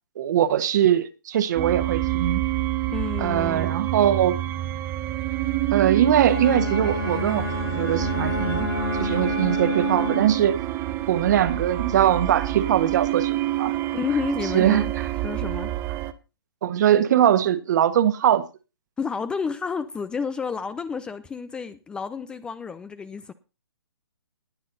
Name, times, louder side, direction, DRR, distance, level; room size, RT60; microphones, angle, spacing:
voice 1, 0.2-2.4 3.2-4.4 5.7-8.7 9.0-10.6 11.1-13.8 14.5-15.1 16.6-18.4, right 10 dB, 45° right, 1.6 m, -21 dB
sound 1, 1.6-16.1, right 14 dB, 20° right, 0.9 m, -27 dB
voice 2, 2.9-3.8 13.9-14.9 15.2-15.7 19.0-23.3, left 5 dB, 5° left, 0.5 m, -30 dB
Bowed string instrument, 6.1-10.5, left 4 dB, 85° left, 7.6 m, -30 dB
19.5 x 7.4 x 4.1 m
hypercardioid pair, 150°, 13 cm